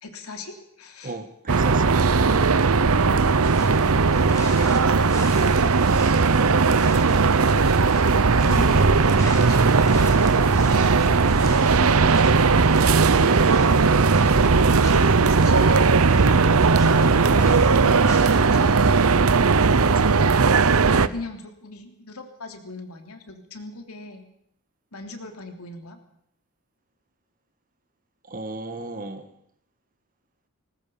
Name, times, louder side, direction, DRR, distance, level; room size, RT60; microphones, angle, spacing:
voice 1, 0.0-1.1 4.3-5.7 8.4-9.8 14.8-16.0 17.4-19.2 20.9-24.3 24.9-26.0, left 3 dB, 75° left, 5 dB, 3.3 m, -40 dB
voice 2, 1.0-2.0 6.3-6.7 12.7-13.5 16.8-17.2 19.8-20.2 28.2-29.3, right 2 dB, 40° right, 9 dB, 1.8 m, -35 dB
sound 1, 1.5-21.1, right 4 dB, 70° right, 0.8 m, -18 dB
sound 2, 3.6-19.1, left 1 dB, 15° left, 5.1 m, -43 dB
20.0 x 19.5 x 7.2 m, 0.71 s
head